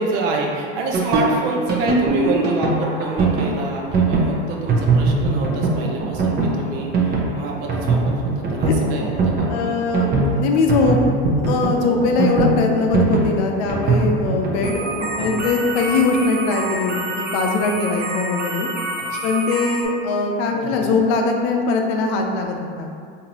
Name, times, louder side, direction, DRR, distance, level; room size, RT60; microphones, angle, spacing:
voice 1, 0.0-9.6 15.2-15.4 19.1-19.2 20.5-20.9, right 3 dB, 65° right, 0 dB, 0.7 m, -27 dB
sound 1, 0.9-19.8, right 3 dB, 30° right, 0.7 m, -21 dB
voice 2, 9.5-11.0 11.3-14.8 15.1-18.7 19.2-22.9, left 4 dB, 65° left, 3 dB, 0.6 m, -21 dB
3.8 x 2.7 x 2.9 m, 2.3 s
hypercardioid pair, 100°, 32 cm